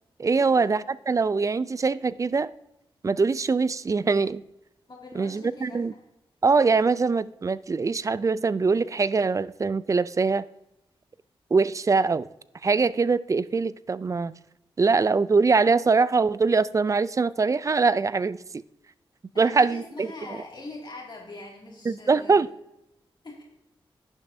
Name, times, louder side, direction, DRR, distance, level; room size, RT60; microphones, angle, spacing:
voice 1, 0.2-2.5 3.0-4.4 5.1-5.9 6.4-10.4 11.5-12.3 12.6-14.3 14.8-18.4 19.4-20.4 21.9-22.5, right 4 dB, 35° right, 0.4 m, -23 dB
voice 2, 4.9-6.0 19.3-22.4 23.2-23.4, left 2 dB, 50° left, 2.3 m, -42 dB
11.5 x 9.7 x 2.7 m
cardioid pair, 80°, 10 cm